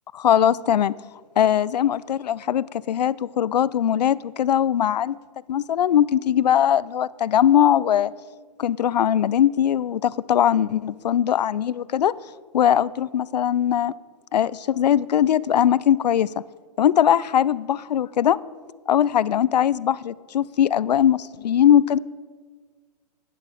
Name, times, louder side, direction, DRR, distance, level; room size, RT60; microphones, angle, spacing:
voice 1, 0.1-0.9 1.4-5.2 5.5-8.1 8.6-12.1 12.5-13.9 14.3-16.3 16.8-18.4 18.9-22.0, left 10 dB, 75° left, 20 dB, 0.5 m, -20 dB
15.5 x 10.5 x 5.0 m, 1.5 s
hypercardioid pair, 130°, 21 cm